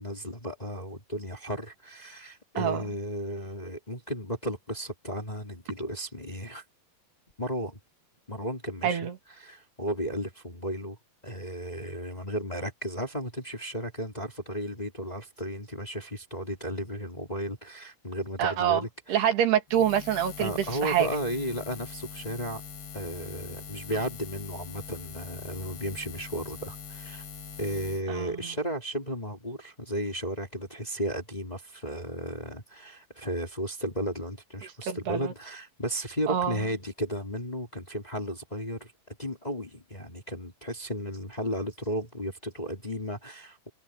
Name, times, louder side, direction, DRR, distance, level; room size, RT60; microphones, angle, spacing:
voice 1, 0.0-6.6 7.4-7.8 8.3-9.0 9.4-11.0 11.2-19.3 20.4-22.6 22.9-27.2 27.6-43.7, equal, 10° left, 2.6 m, -34 dB
voice 2, 18.4-18.8 19.1-21.1 28.1-28.4 34.9-35.3 36.3-36.6, right 10 dB, 80° right, 4.5 m, -26 dB
Buzz, 19.7-28.0, left 6 dB, 90° left, 5.9 m, -43 dB
omnidirectional pair, 4.6 m